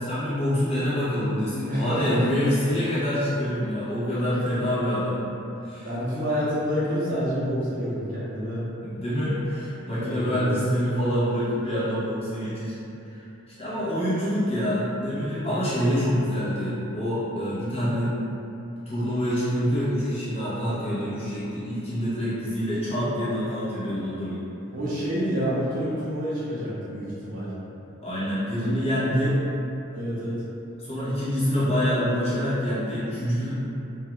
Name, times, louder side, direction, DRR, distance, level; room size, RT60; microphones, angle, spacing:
voice 1, 0.0-5.2 5.6-5.9 8.8-12.8 13.0-13.3 13.6-18.1 18.9-24.4 28.0-29.3 30.8-33.5, equal, 30° left, -11 dB, 0.7 m, -26 dB
voice 2, 1.6-2.3 4.3-4.5 5.8-8.6 10.0-10.6 24.7-27.5 29.0-29.4 29.9-30.4, equal, 40° right, -9 dB, 0.6 m, -28 dB
2.4 x 2.3 x 2.9 m, 2.8 s
head